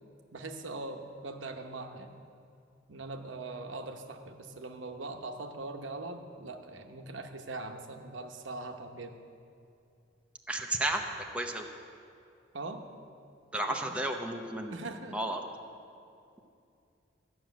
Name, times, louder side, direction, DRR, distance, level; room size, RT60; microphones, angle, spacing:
voice 1, 0.3-2.2 2.9-9.1 12.5-12.8 13.6-14.0 14.7-15.2, right 2 dB, 75° right, 5 dB, 1.0 m, -41 dB
voice 2, 10.5-11.0 11.3-11.6 13.5-14.7 15.1-15.4, right 1 dB, 5° right, 1 dB, 0.7 m, -32 dB
13.5 x 6.3 x 9.1 m, 2.6 s
head